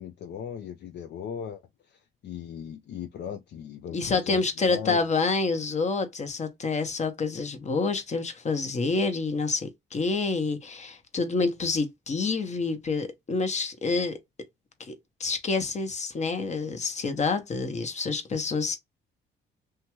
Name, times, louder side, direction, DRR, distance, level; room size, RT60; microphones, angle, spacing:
voice 1, 0.0-1.6 1.9-5.0, left 8 dB, 60° left, 0.4 m, -38 dB
voice 2, 3.9-14.2 14.9-15.0 15.2-18.8, left 4 dB, 35° left, 0.9 m, -28 dB
2.8 x 2.3 x 2.9 m
cardioid pair, 90°, 20 cm